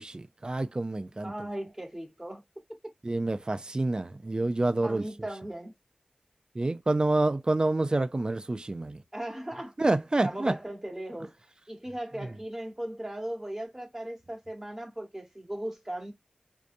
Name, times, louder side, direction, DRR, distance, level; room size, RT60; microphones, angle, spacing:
voice 1, 0.0-1.3 3.0-5.1 6.6-9.0 9.8-10.5, right 2 dB, 35° right, 0.4 m, -28 dB
voice 2, 1.2-2.4 4.8-5.7 9.1-9.7 10.2-11.3 11.7-16.1, right 1 dB, 15° right, 1.1 m, -37 dB
2.6 x 2.2 x 2.5 m
cardioid pair, 45°, 3 cm